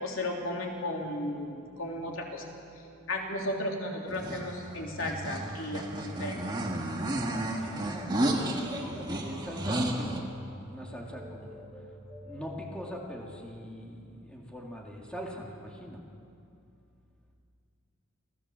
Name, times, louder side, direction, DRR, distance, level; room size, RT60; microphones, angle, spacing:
voice 1, 0.0-2.4 3.1-6.4, left 1 dB, 80° left, 0 dB, 3.3 m, -34 dB
sound 1, 4.1-10.2, right 1 dB, 20° right, 1.9 m, -32 dB
sound 2, 4.7-13.4, equal, 20° left, 2.2 m, -47 dB
voice 2, 7.6-10.2 10.6-11.7 12.2-16.0, equal, 5° left, -1 dB, 2.2 m, -42 dB
27.5 x 15.5 x 7.6 m, 2.6 s
head